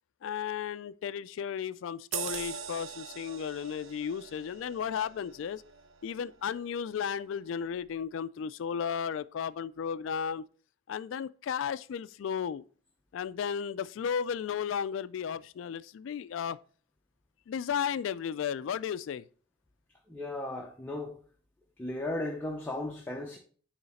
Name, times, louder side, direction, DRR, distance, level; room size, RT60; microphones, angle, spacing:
voice 1, 0.2-5.6 6.0-10.4 10.9-12.6 13.1-16.6 17.5-19.2, left 7 dB, 75° left, 0.3 m, -34 dB
sound 1, 2.1-7.1 7.5-7.7, right 8 dB, 85° right, 0.6 m, -42 dB
voice 2, 20.1-21.2 21.8-23.4, left 2 dB, 10° left, 0.7 m, -36 dB
9.6 x 3.2 x 4.1 m
head